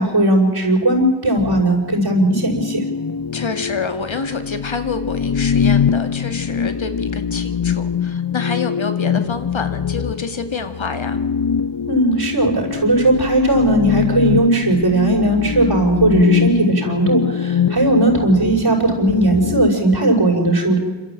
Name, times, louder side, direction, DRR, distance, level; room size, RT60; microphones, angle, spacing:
voice 1, 0.0-2.8 11.9-20.8, right 1 dB, 55° right, -5 dB, 6.0 m, -17 dB
sound 1, 1.4-19.7, left 7 dB, 55° left, 0.8 m, -23 dB
voice 2, 3.3-11.2, left 4 dB, 75° left, 8 dB, 2.2 m, -27 dB
27.0 x 13.5 x 9.0 m, 1.4 s
wide cardioid pair, 50°, 47 cm